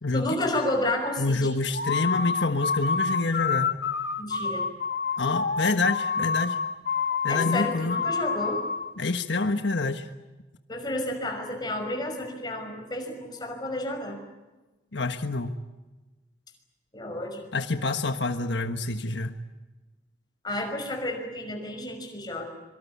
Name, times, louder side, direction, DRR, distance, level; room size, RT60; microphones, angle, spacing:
voice 1, 0.1-1.6 4.2-4.7 7.3-8.6 10.7-14.2 16.9-17.5 20.4-22.5, left 1 dB, 25° left, 4 dB, 5.7 m, -31 dB
voice 2, 1.2-3.7 5.2-6.6 7.2-8.0 9.0-10.1 14.9-15.5 17.5-19.3, left 3 dB, 80° left, 7 dB, 1.4 m, -27 dB
sound 1, 1.7-8.9, left 5 dB, 60° left, 1.4 m, -28 dB
25.5 x 24.5 x 8.5 m, 1.2 s
head